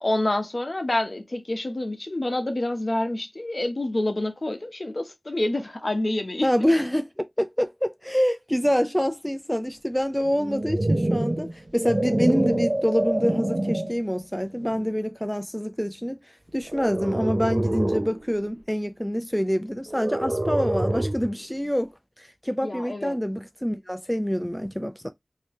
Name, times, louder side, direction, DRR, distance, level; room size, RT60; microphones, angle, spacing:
voice 1, 0.0-6.5 22.6-23.2, left 1 dB, 55° left, 0.9 m, -27 dB
voice 2, 6.4-16.2 16.5-21.9 22.2-25.1, equal, 5° left, 0.4 m, -26 dB
sound 1, 10.3-14.0 14.6-14.9 16.7-18.2 19.9-21.3, right 1 dB, 40° right, 0.6 m, -26 dB
3.3 x 2.8 x 3.0 m
wide cardioid pair, 60°, 0 cm